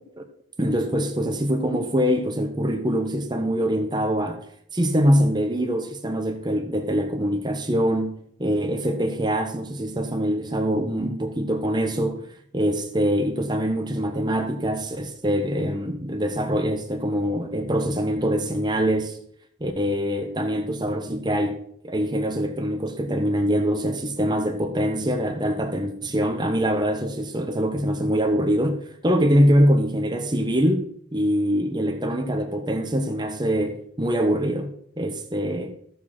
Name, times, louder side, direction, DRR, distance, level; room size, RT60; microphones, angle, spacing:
voice 1, 0.6-4.4 4.7-8.1 8.4-12.3 12.5-19.2 19.6-21.6 21.8-30.8 31.1-35.7, equal, 20° right, 1.1 m, -24 dB
14.5 x 7.0 x 4.4 m
head